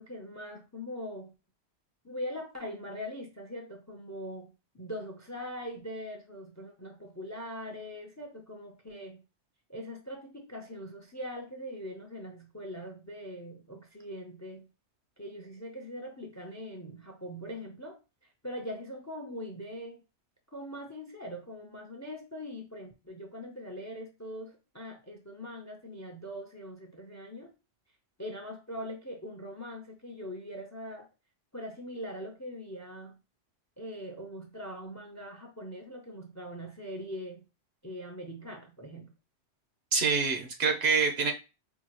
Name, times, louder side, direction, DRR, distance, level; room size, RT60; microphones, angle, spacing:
voice 1, 0.0-1.3 2.0-9.2 9.7-14.7 15.2-18.0 18.4-20.0 20.5-27.5 28.2-31.1 31.5-33.2 33.8-37.4 37.8-39.1, equal, 20° left, 0.5 m, -42 dB
voice 2, 39.9-41.3, right 5 dB, 70° right, 1.0 m, -26 dB
4.6 x 2.4 x 2.9 m
omnidirectional pair, 1.1 m